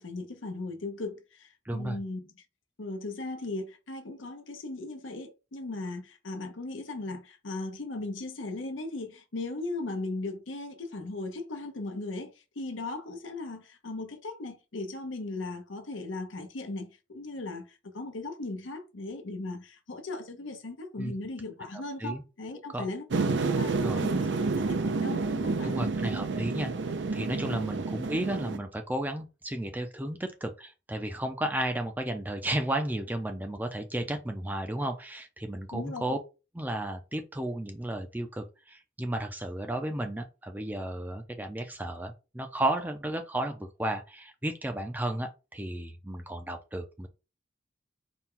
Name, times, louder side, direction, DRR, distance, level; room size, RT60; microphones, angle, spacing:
voice 1, 0.0-2.2 2.8-25.8 27.5-27.7 35.7-36.2, left 2 dB, 85° left, 0.8 m, -38 dB
voice 2, 1.7-2.0 21.0-21.1 21.7-22.2 22.7-22.9 23.8-24.0 25.6-26.7 27.1-36.2 36.5-47.1, right 1 dB, 10° right, 0.4 m, -33 dB
sound 1, 23.1-28.6, right 3 dB, 70° right, 0.5 m, -29 dB
4.3 x 2.2 x 3.7 m
head